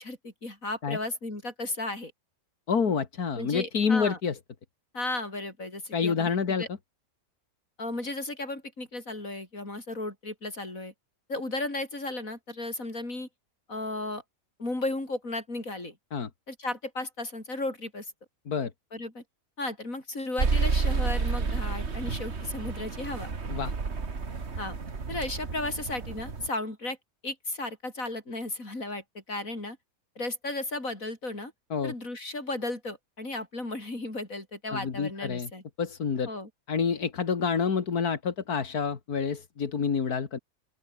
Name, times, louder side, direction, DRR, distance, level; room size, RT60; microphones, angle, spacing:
voice 1, 0.0-2.1 3.4-4.2 4.9-6.3 6.6-6.7 7.8-10.9 11.3-13.3 13.7-14.2 14.6-16.0 16.5-18.1 18.9-19.2 19.6-23.3 24.6-24.8 25.1-27.0 27.2-29.8 30.2-31.5 31.8-35.6 36.3-36.5, left 2 dB, 65° left, 6.6 m, -34 dB
voice 2, 2.7-4.4 5.9-6.6 16.1-16.3 18.5-18.7 23.5-23.7 31.7-31.9 34.7-35.5 35.8-36.3 36.7-40.4, left 6 dB, 85° left, 2.5 m, -28 dB
sound 1, 20.4-26.5, right 4 dB, 45° right, 2.2 m, -30 dB
open air
omnidirectional pair, 1.6 m